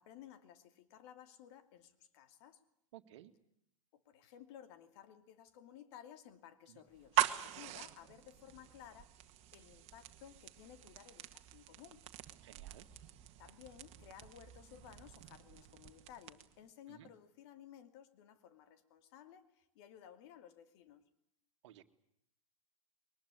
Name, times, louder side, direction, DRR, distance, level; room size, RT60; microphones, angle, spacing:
voice 1, 0.0-2.6 3.9-12.0 13.4-21.1, left 10 dB, 50° left, 10 dB, 2.6 m, -57 dB
voice 2, 2.9-3.3 6.7-6.8 12.4-12.9 16.9-17.1 21.6-21.8, right 13 dB, 60° right, 9 dB, 2.0 m, -57 dB
sound 1, 6.9-16.7, right 15 dB, 35° right, 1.8 m, -42 dB
22.5 x 20.0 x 9.8 m, 0.75 s
hypercardioid pair, 105°, 17 cm